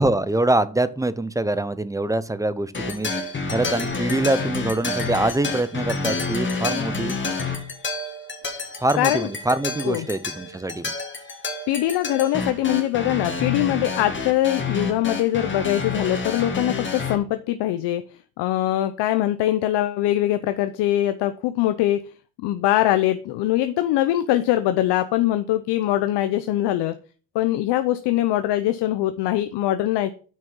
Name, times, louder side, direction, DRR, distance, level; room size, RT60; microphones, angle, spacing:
voice 1, 0.0-7.2 8.8-10.9, right 2 dB, 10° right, 15 dB, 0.6 m, -24 dB
sound 1, 2.7-17.2, left 3 dB, 25° left, 2.1 m, -29 dB
voice 2, 8.9-9.3 9.8-10.1 11.7-18.0 18.4-22.0 22.4-26.9 27.3-30.1, left 14 dB, 70° left, 10 dB, 0.7 m, -22 dB
6.4 x 5.4 x 7.0 m, 0.40 s
cardioid pair, 90°, 42 cm